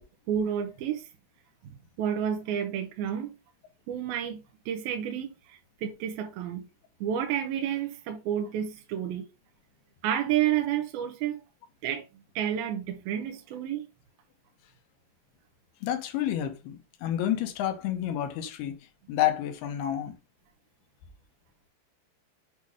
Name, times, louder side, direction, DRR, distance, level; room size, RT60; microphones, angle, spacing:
voice 1, 0.3-1.1 1.6-3.3 3.9-6.7 7.0-9.3 10.0-11.4 11.8-12.1 12.4-13.9, right 10 dB, 75° right, 2.4 m, -30 dB
voice 2, 15.8-18.8 19.1-20.1, left 11 dB, 75° left, 2.7 m, -29 dB
8.4 x 2.8 x 4.8 m
omnidirectional pair, 5.0 m